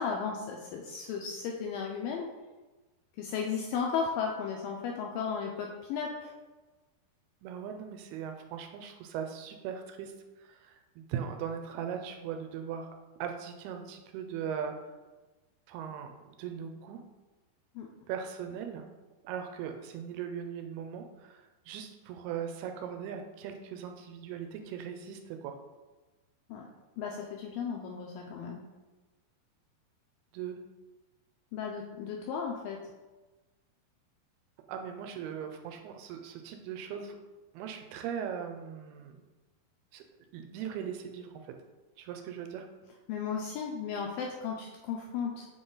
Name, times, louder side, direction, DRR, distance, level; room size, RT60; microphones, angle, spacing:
voice 1, 0.0-2.3 3.2-6.3 17.8-17.9 26.5-26.7 27.0-28.6 31.5-32.8 43.1-45.4, left 6 dB, 80° left, 0 dB, 2.0 m, -35 dB
voice 2, 7.4-10.1 10.4-14.7 15.7-17.0 18.1-18.9 19.2-25.6 30.3-30.6 34.7-37.2 37.5-39.2 39.9-40.0 40.3-41.5 42.0-42.7, right 8 dB, 85° right, 5 dB, 2.6 m, -39 dB
7.3 x 3.9 x 3.8 m, 1.2 s
omnidirectional pair, 4.6 m